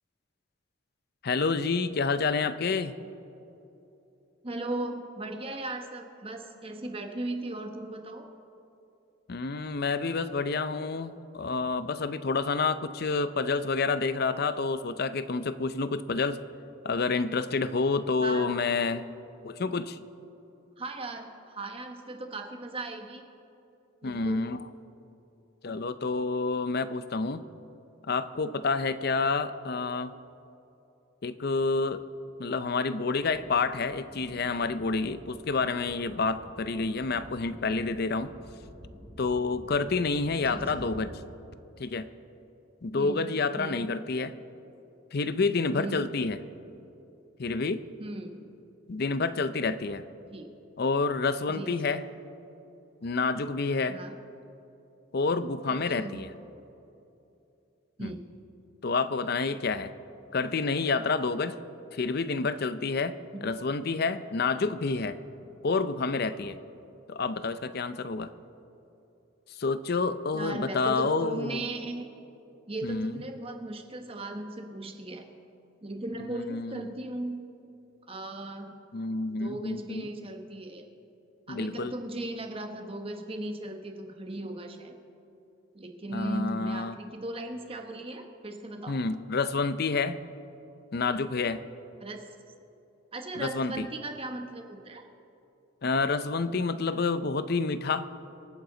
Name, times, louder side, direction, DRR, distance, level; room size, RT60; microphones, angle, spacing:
voice 1, 1.2-2.9 9.3-16.4 16.8-19.0 19.4-20.0 24.0-24.6 25.6-27.4 28.1-30.1 31.2-32.0 32.4-38.3 39.2-41.2 41.8-42.1 42.8-44.3 45.1-46.4 47.4-47.8 48.9-50.0 50.8-52.0 53.0-54.0 55.1-56.3 58.0-58.1 58.8-59.9 60.3-61.6 61.9-65.2 65.6-66.6 67.1-68.3 69.5-71.6 72.8-73.1 76.5-76.9 78.9-80.1 81.5-81.9 86.1-87.0 88.9-90.2 90.9-91.6 93.4-93.9 95.8-98.1, left 4 dB, 50° left, 13 dB, 0.5 m, -29 dB
voice 2, 4.4-8.3 18.2-18.5 20.8-23.2 24.0-24.6 40.5-40.6 42.9-43.9 45.8-46.1 48.0-48.4 50.2-50.5 51.5-51.9 53.9-54.2 55.7-56.3 58.0-58.2 63.3-63.5 70.3-72.1 72.7-75.3 75.8-77.4 78.1-78.8 79.4-80.9 81.5-85.0 85.7-89.0 92.0-92.2 93.1-95.0, right 2 dB, 30° right, 5 dB, 1.1 m, -37 dB
sound 1, 33.2-41.1, equal, 5° right, 2.9 m, -49 dB
26.0 x 9.2 x 3.9 m, 2.8 s
head